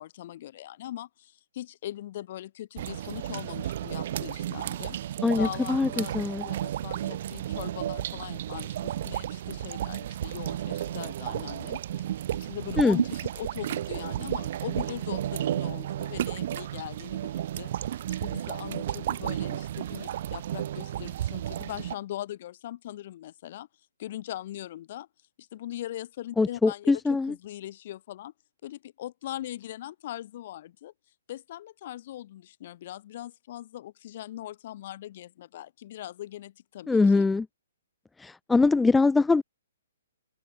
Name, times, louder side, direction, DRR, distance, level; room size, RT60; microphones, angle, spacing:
voice 1, 0.0-12.0 12.3-23.7 24.0-25.1 25.4-28.3 28.6-30.9 31.3-37.3, left 13 dB, 45° left, 4.7 m, -40 dB
sound 1, 2.8-22.0, right 11 dB, 50° right, 1.0 m, -33 dB
voice 2, 5.2-6.4 12.8-13.0 26.4-27.3 36.9-37.5 38.2-39.4, left 3 dB, 5° left, 0.3 m, -23 dB
open air
hypercardioid pair, 145°, 0 cm